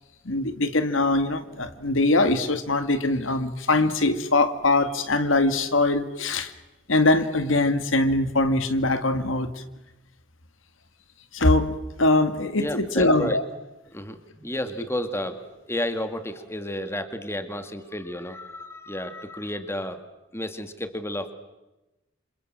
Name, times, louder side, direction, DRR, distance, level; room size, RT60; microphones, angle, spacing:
voice 1, 0.3-6.5 6.9-9.5 11.3-13.4, left 2 dB, 85° left, 10 dB, 2.0 m, -22 dB
voice 2, 12.6-13.4 13.9-20.0 20.3-21.3, left 1 dB, 15° left, 8 dB, 2.1 m, -32 dB
28.5 x 27.0 x 7.6 m, 1.0 s
head